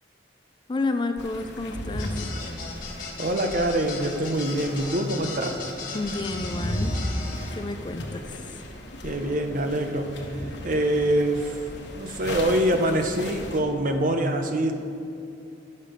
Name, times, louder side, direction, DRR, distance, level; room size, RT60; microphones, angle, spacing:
voice 1, 0.7-2.3 5.9-7.0 7.6-8.6, left 2 dB, 25° left, 8 dB, 0.4 m, -30 dB
sound 1, 1.2-13.6, left 1 dB, 65° left, 1.1 m, -35 dB
sound 2, 2.0-7.5, left 4 dB, 50° left, 1.5 m, -37 dB
voice 2, 3.2-5.6 9.0-11.6 12.0-14.7, right 1 dB, 45° right, 5 dB, 0.8 m, -25 dB
11.0 x 6.6 x 5.1 m, 2.7 s
head